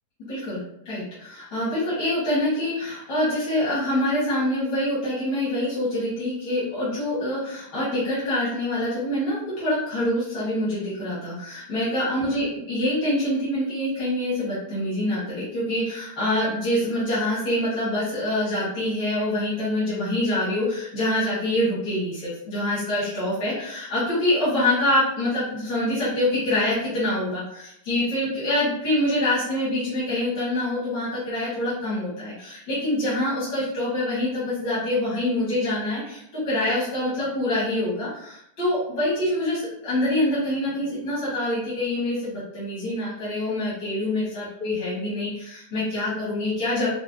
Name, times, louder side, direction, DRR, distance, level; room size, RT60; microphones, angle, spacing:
voice 1, 0.3-46.9, left 1 dB, 80° left, -11 dB, 2.5 m, -25 dB
5.7 x 2.2 x 2.5 m, 0.76 s
omnidirectional pair, 2.0 m